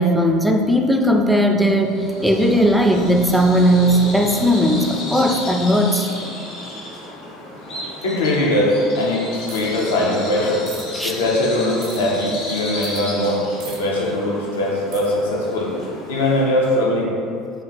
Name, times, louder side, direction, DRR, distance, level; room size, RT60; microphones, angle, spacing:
voice 1, 0.0-6.1 10.9-11.1, equal, ahead, 3 dB, 0.4 m, -17 dB
sound 1, 1.7-6.3, right 1 dB, 80° right, 0.8 m, -36 dB
Bird vocalization bird call bird song, 1.8-16.6, left 1 dB, 60° left, 1.3 m, -33 dB
voice 2, 8.0-10.7 11.0-15.7 16.1-17.1, left 1 dB, 75° left, -3 dB, 0.7 m, -21 dB
sound 2, 9.5-9.8 10.7-10.8 11.8-12.0 12.8-13.0 13.6-13.8 14.9-15.1, right 6 dB, 55° right, 0.6 m, -38 dB
4.8 x 2.4 x 3.3 m, 2.4 s
hypercardioid pair, 70°, 0 cm